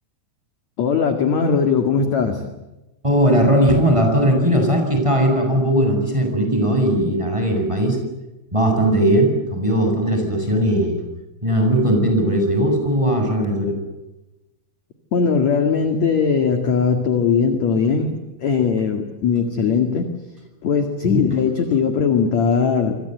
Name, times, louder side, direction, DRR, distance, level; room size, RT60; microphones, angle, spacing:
voice 1, 0.8-2.5 15.1-20.1 20.6-23.0, left 6 dB, 50° left, 6 dB, 2.4 m, -19 dB
voice 2, 3.0-8.0 8.5-11.0 11.4-13.8 21.1-21.2, equal, 5° right, 3 dB, 7.2 m, -18 dB
28.0 x 24.5 x 8.0 m, 1.0 s
omnidirectional pair, 5.9 m